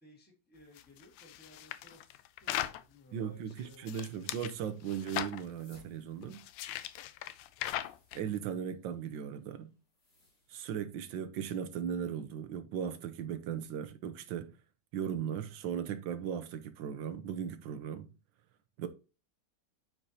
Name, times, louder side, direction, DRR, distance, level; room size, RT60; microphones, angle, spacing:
voice 1, 0.0-4.2, left 1 dB, 5° left, 1.7 m, -59 dB
sound 1, 0.8-2.8 3.5-4.5 4.8-5.4 6.2-8.2, left 13 dB, 85° left, 1.3 m, -39 dB
voice 2, 3.1-6.4 8.1-9.7 10.5-14.5 14.9-18.1 18.8-18.9, right 8 dB, 80° right, 1.4 m, -37 dB
sound 2, 5.3-10.7, equal, 45° left, 3.0 m, -66 dB
8.9 x 4.8 x 2.8 m
omnidirectional pair, 2.0 m